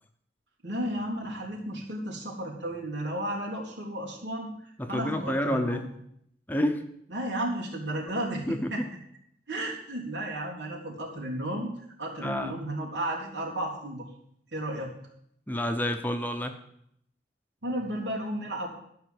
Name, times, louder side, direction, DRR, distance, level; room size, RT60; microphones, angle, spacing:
voice 1, 0.6-4.5 4.9-5.9 7.1-8.8 9.5-11.7 12.0-14.1 14.5-14.9 17.6-18.7, right 1 dB, 90° right, -3 dB, 3.5 m, -33 dB
voice 2, 4.8-5.9 6.5-6.8 8.5-8.9 12.2-12.6 15.5-16.6, equal, 10° left, 6 dB, 0.8 m, -29 dB
13.5 x 5.9 x 7.7 m, 0.71 s
head